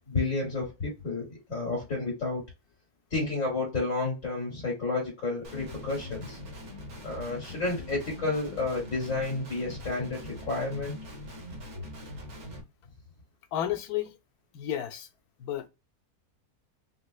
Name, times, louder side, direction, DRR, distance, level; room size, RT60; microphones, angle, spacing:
voice 1, 0.1-2.4 3.1-6.4 7.0-11.0 11.7-11.8, left 3 dB, 55° left, 2.2 m, -31 dB
Guitar, 5.4-12.6, left 1 dB, 70° right, 1.6 m, -43 dB
voice 2, 13.5-14.1 14.5-15.1 15.4-15.7, left 11 dB, 80° left, 1.1 m, -32 dB
5.4 x 2.0 x 2.3 m
omnidirectional pair, 1.6 m